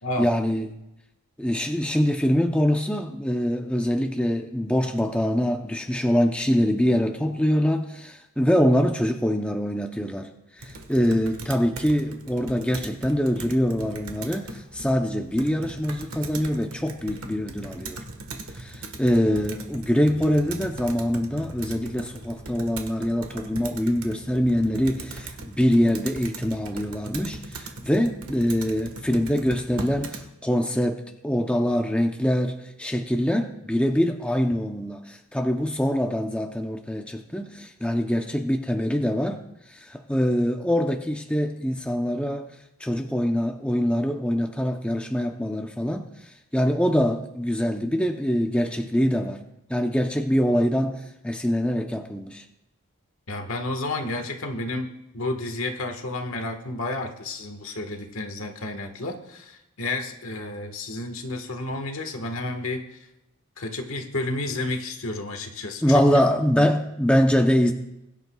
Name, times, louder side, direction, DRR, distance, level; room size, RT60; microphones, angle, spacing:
voice 1, 0.2-0.8 1.4-10.3 10.6-18.0 18.5-39.4 39.7-42.5 42.8-46.1 46.5-49.4 49.7-52.4 65.8-67.7, equal, 5° left, 4 dB, 0.6 m, -24 dB
Computer keyboard, 10.6-30.3, right 2 dB, 80° right, 1.5 m, -39 dB
voice 2, 53.3-63.0 63.6-66.2 66.6-66.7, left 2 dB, 70° left, 5 dB, 1.5 m, -31 dB
22.0 x 10.5 x 2.3 m, 0.88 s
head